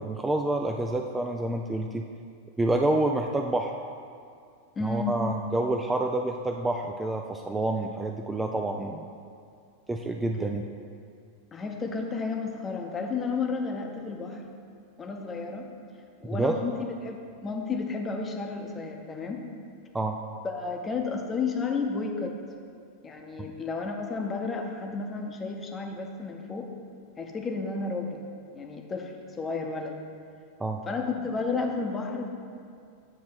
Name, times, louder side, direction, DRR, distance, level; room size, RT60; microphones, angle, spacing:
voice 1, 0.0-2.0 2.6-3.7 4.8-9.1 9.9-10.6 16.2-16.5 19.9-20.2 30.6-30.8, right 2 dB, 10° right, 2 dB, 0.3 m, -28 dB
voice 2, 4.8-5.2 11.5-14.4 15.0-15.7 16.2-16.7 17.0-19.4 20.4-22.4 23.0-26.7 27.2-28.2 28.5-29.1 29.4-30.0 30.9-32.3, left 4 dB, 20° left, 2 dB, 0.8 m, -32 dB
7.9 x 3.1 x 6.0 m, 2.3 s
figure-of-eight pair, 90°, 0 cm